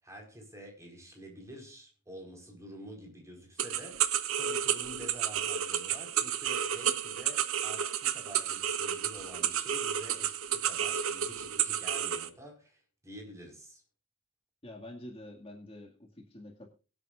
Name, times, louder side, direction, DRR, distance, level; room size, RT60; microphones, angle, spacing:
voice 1, 0.0-13.8, equal, 15° right, 4.8 m, -48 dB
sound 1, 3.6-12.3, right 9 dB, 75° right, 1.1 m, -31 dB
voice 2, 14.6-16.7, left 1 dB, 30° left, 2.0 m, -47 dB
23.5 x 8.3 x 2.5 m
head